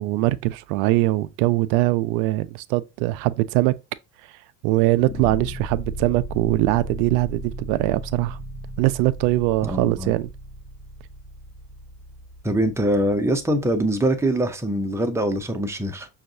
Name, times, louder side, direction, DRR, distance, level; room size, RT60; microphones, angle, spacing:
voice 1, 0.0-3.8 4.6-8.4 8.8-10.3, right 18 dB, 70° right, 0.5 m, -22 dB
sound 1, 4.9-14.0, right 1 dB, 30° left, 1.0 m, -36 dB
voice 2, 9.6-10.1 12.4-16.1, right 1 dB, 5° right, 0.5 m, -23 dB
5.7 x 2.3 x 2.6 m
supercardioid pair, 90°, 48 cm